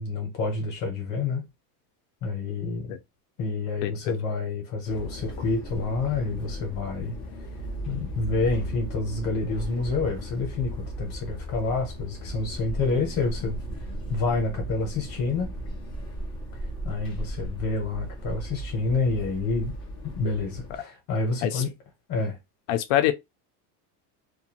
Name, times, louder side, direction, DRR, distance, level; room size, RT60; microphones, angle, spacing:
voice 1, 0.0-1.5 2.2-2.9 3.4-7.1 7.9-15.5 16.8-19.7 20.0-21.7 22.1-22.4, left 3 dB, 40° left, 0.9 m, -28 dB
sound 1, 4.8-20.8, equal, 10° left, 0.4 m, -36 dB
voice 2, 22.7-23.1, left 13 dB, 60° left, 0.5 m, -24 dB
2.5 x 2.3 x 2.8 m
cardioid pair, 175°, 46 cm